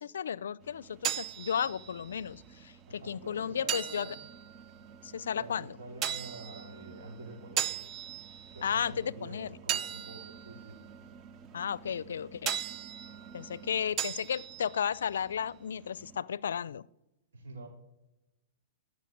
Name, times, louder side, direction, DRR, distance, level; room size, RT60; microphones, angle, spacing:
voice 1, 0.0-4.1 5.0-5.7 8.6-9.5 11.5-12.6 13.3-16.8, left 8 dB, 85° left, 22 dB, 0.4 m, -34 dB
sound 1, 0.6-16.2, right 10 dB, 30° right, 0.7 m, -40 dB
voice 2, 2.9-4.2 5.3-7.8 8.5-10.8 17.3-17.7, right 2 dB, 85° right, 1 dB, 4.3 m, -47 dB
15.5 x 6.4 x 7.9 m, 0.95 s
hypercardioid pair, 130°, 0 cm